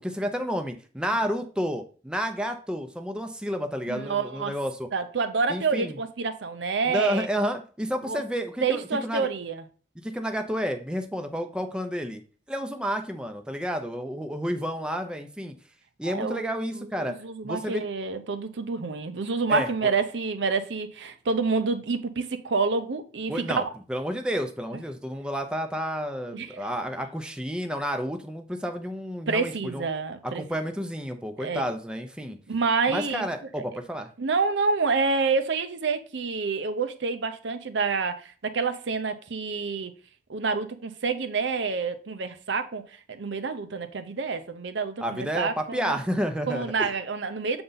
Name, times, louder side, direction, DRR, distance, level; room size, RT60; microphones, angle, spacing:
voice 1, 0.0-4.9 5.5-6.0 6.9-9.3 10.0-12.2 12.5-15.5 16.0-17.2 17.4-17.8 19.5-19.9 23.3-23.6 23.9-29.9 30.2-32.4 32.9-34.1 45.0-46.9, equal, 5° right, 0.6 m, -30 dB
voice 2, 3.9-4.5 4.9-7.3 8.1-8.2 8.6-9.6 16.1-23.7 26.3-26.7 29.3-30.4 31.4-31.7 32.5-33.3 33.6-33.7 34.2-39.9 40.3-42.8 43.1-46.0 46.5-47.6, right 4 dB, 75° right, 0.6 m, -28 dB
6.9 x 3.8 x 4.0 m
head